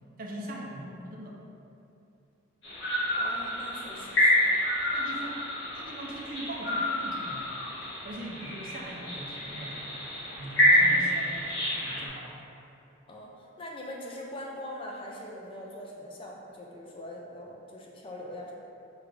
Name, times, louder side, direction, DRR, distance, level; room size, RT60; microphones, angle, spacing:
voice 1, 0.2-1.4 4.9-5.4 5.7-7.4 8.0-9.9 10.3-12.4, right 1 dB, 45° right, -1 dB, 0.4 m, -41 dB
sound 1, 2.6-12.1, left 1 dB, 65° left, 1.2 m, -28 dB
voice 2, 3.1-4.5 10.6-11.1 13.1-18.5, left 1 dB, 25° left, -2 dB, 0.4 m, -42 dB
5.1 x 2.3 x 3.2 m, 2.7 s
head